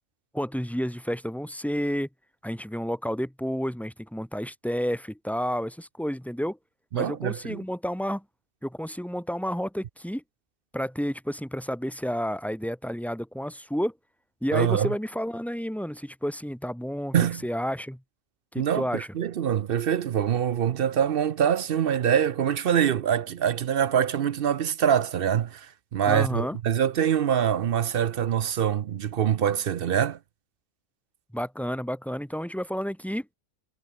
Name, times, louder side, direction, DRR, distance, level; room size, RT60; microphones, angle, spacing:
voice 1, 0.3-2.1 2.4-6.6 6.9-8.2 8.6-10.2 10.7-13.9 14.4-18.0 18.5-19.1 26.1-26.6 31.3-33.3, equal, ahead, 2.1 m, -30 dB
voice 2, 6.9-7.6 14.5-14.9 17.1-17.4 18.6-30.2, right 9 dB, 55° right, 0.7 m, -24 dB
omnidirectional pair, 1.3 m